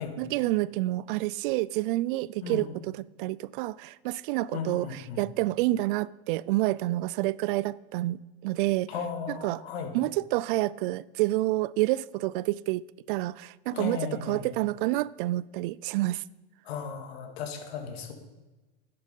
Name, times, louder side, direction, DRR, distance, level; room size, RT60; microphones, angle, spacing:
voice 1, 0.0-8.9 9.3-9.6 9.9-16.2, right 17 dB, 60° right, 0.4 m, -29 dB
voice 2, 4.5-5.2 8.9-9.9 13.7-14.5 16.7-18.1, left 6 dB, 85° left, 2.2 m, -35 dB
12.0 x 10.0 x 5.4 m
supercardioid pair, 150°, 30 cm